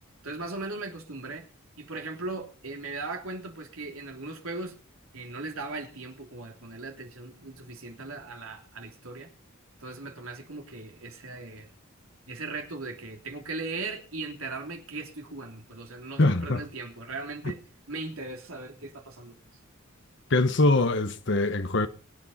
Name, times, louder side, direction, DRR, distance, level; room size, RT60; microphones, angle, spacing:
voice 1, 0.2-1.5 1.8-4.8 5.1-9.3 9.8-11.7 12.3-17.6 17.9-19.4, right 3 dB, 75° right, 3.2 m, -38 dB
voice 2, 16.2-16.6 20.3-21.9, left 2 dB, 55° left, 1.1 m, -23 dB
23.5 x 8.9 x 4.2 m
head